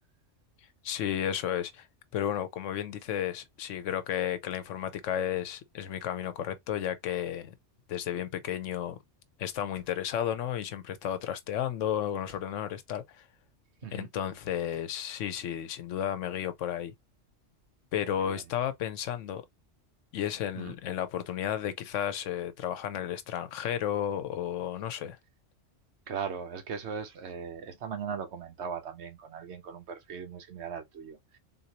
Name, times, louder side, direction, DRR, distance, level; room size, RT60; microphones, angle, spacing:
voice 1, 0.8-1.9 2.1-7.5 7.9-9.0 9.4-13.2 13.9-16.9 17.9-19.4 20.1-25.2, left 10 dB, 85° left, 1.0 m, -33 dB
sound 1, 9.7-10.2 12.2-12.7 14.0-14.2 14.7-15.1, left 2 dB, 50° right, 2.0 m, -59 dB
voice 2, 18.1-18.4 20.5-20.8 26.1-31.4, right 6 dB, 65° right, 1.0 m, -39 dB
3.8 x 2.7 x 2.8 m
omnidirectional pair, 1.2 m